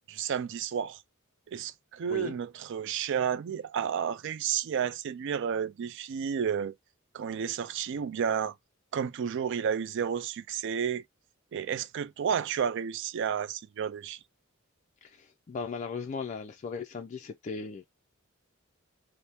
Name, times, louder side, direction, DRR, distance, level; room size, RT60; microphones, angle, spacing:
voice 1, 0.1-1.0 1.5-6.7 7.1-8.5 8.9-11.0 11.5-14.2, right 7 dB, 60° right, 0.3 m, -31 dB
voice 2, 15.0-17.8, left 5 dB, 35° left, 0.3 m, -37 dB
3.3 x 2.0 x 2.7 m
head